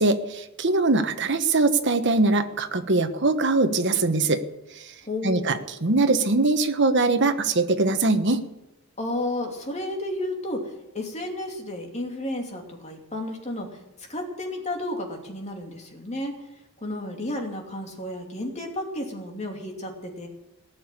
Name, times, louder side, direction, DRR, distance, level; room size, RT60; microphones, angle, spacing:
voice 1, 0.0-4.4 4.8-4.9 5.2-8.4, right 3 dB, 55° right, 8 dB, 1.3 m, -22 dB
voice 2, 5.0-5.6 9.0-10.7 10.9-13.8 14.1-16.4 16.8-20.3, left 1 dB, 30° left, 2 dB, 2.8 m, -32 dB
18.0 x 7.1 x 9.9 m, 0.89 s
head